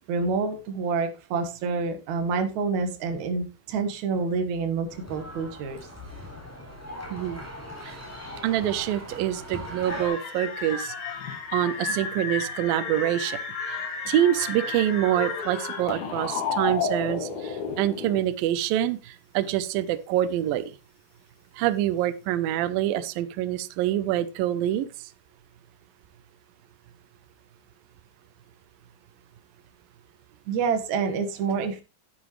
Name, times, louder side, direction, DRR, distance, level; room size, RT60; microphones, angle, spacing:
voice 1, 0.1-5.9 30.5-31.8, right 5 dB, 60° right, 6 dB, 2.1 m, -27 dB
sound 1, 4.9-10.1, equal, 5° left, 3.2 m, -39 dB
voice 2, 7.1-7.4 7.9-8.0 8.4-10.9 11.5-13.4 14.1-20.7 21.6-24.9, right 12 dB, 90° right, 13 dB, 2.0 m, -26 dB
sound 2, 9.9-18.2, left 5 dB, 85° left, 4.2 m, -32 dB
11.0 x 9.3 x 3.2 m, 0.29 s
omnidirectional pair, 5.2 m